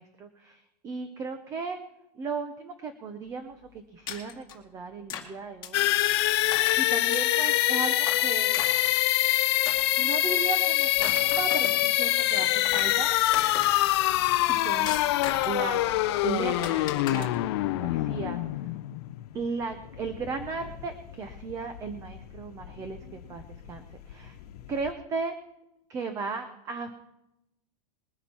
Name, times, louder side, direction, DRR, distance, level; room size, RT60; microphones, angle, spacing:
voice 1, 0.0-1.8 2.2-5.9 6.8-8.6 10.0-11.1 11.4-13.1 14.5-15.0 15.5-15.8 16.2-17.3 17.8-18.6 19.3-24.4 24.7-25.3 25.9-26.9, right 4 dB, 15° right, 8 dB, 0.7 m, -35 dB
sound 1, 4.1-4.5 5.1-5.3 5.6-5.9 6.5-6.8 7.1-7.5 8.0-9.1 9.6-10.3 10.8-11.9 12.4-12.9 13.3-14.0 14.9-15.6 16.6-17.2, left 9 dB, 20° left, 2.0 m, -37 dB
sound 2, 5.7-19.4, left 16 dB, 40° left, 0.6 m, -25 dB
sound 3, 12.7-24.9, left 8 dB, 65° left, 1.2 m, -48 dB
21.5 x 9.8 x 4.5 m, 0.86 s
supercardioid pair, 170°, 21 cm